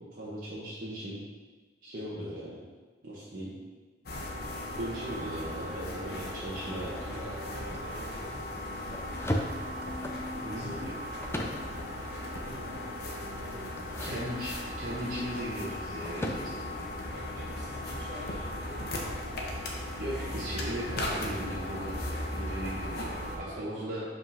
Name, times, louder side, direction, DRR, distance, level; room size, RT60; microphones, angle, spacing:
voice 1, 0.1-1.2 1.8-2.6 3.0-3.5 4.8-7.2 10.3-10.9 14.0-16.7 20.0-23.0 23.4-24.0, equal, 50° right, -9 dB, 1.2 m, -37 dB
sound 1, 4.1-23.4, left 1 dB, 55° left, 1.0 m, -37 dB
voice 2, 6.8-9.2 10.7-10.8 12.3-13.7 14.0-14.3 17.1-19.2 22.8-24.0, equal, 70° right, -5 dB, 1.8 m, -48 dB
sound 2, 7.4-16.3, left 1 dB, 15° left, 0.5 m, -40 dB
5.1 x 3.8 x 5.5 m, 1.3 s
head